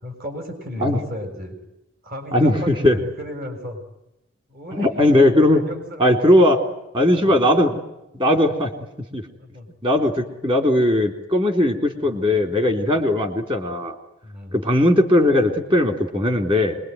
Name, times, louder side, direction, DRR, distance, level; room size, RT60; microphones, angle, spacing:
voice 1, 0.0-1.6 2.0-3.8 4.5-4.9 5.5-6.3 7.2-7.3 9.4-9.7 12.0-13.1 14.2-14.6, equal, 50° right, 6 dB, 7.0 m, -35 dB
voice 2, 2.3-3.0 4.7-5.6 6.0-6.6 6.9-7.8 8.2-8.7 9.1-9.2 9.8-13.9 14.5-16.8, left 1 dB, 25° right, 6 dB, 3.5 m, -18 dB
26.5 x 22.5 x 9.6 m, 0.91 s
head